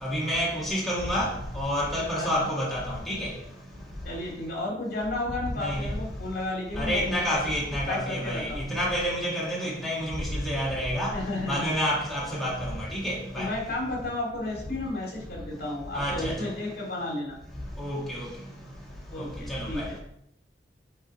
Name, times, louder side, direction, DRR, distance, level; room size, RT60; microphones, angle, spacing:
voice 1, 0.0-3.3 5.6-5.9 6.8-11.2 11.5-13.5 15.9-16.4 17.8-18.3 19.5-19.9, equal, ahead, -6 dB, 2.0 m, -29 dB
voice 2, 2.1-2.5 4.0-7.4 7.9-8.6 11.1-11.8 13.3-17.4 19.1-20.0, left 2 dB, 55° left, -2 dB, 3.0 m, -33 dB
7.4 x 4.9 x 4.4 m, 0.74 s
head